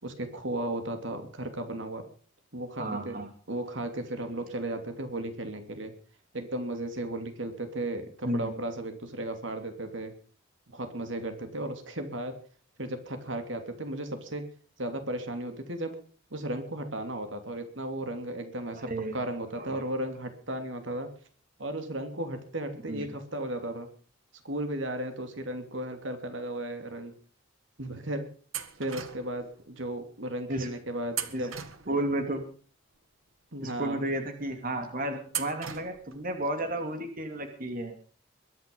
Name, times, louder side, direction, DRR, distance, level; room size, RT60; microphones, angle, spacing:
voice 1, 0.0-2.0 2.5-3.2 3.5-5.9 6.3-10.1 10.7-12.3 12.8-14.4 14.8-16.0 16.3-21.1 21.6-23.9 24.4-27.1 27.8-28.3 28.8-31.5 33.5-34.0, right 1 dB, 65° right, 7 dB, 2.9 m, -35 dB
voice 2, 2.8-3.3 8.2-8.5 18.7-19.2 19.6-19.8 22.9-23.0 30.5-30.7 31.3-31.4 31.9-32.4 33.6-37.9, right 1 dB, 45° right, 6 dB, 2.7 m, -32 dB
sound 1, 28.5-29.4 31.1-32.2 35.3-36.2, right 9 dB, 85° right, 1.8 m, -37 dB
22.5 x 10.5 x 5.4 m, 0.41 s
head